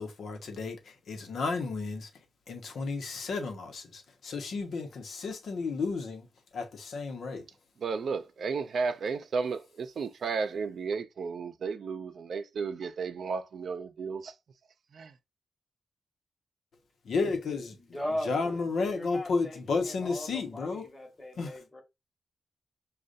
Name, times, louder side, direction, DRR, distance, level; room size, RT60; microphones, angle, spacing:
voice 1, 0.0-2.1 2.5-6.3 6.5-7.5 17.0-17.8 18.2-20.9 21.4-21.6, left 4 dB, 75° left, 0.9 m, -32 dB
voice 2, 7.8-14.3 14.9-15.1, right 5 dB, 65° right, 0.5 m, -33 dB
voice 3, 17.9-21.8, left 1 dB, 20° left, 1.2 m, -39 dB
6.4 x 2.4 x 2.6 m
wide cardioid pair, 135°, 0 cm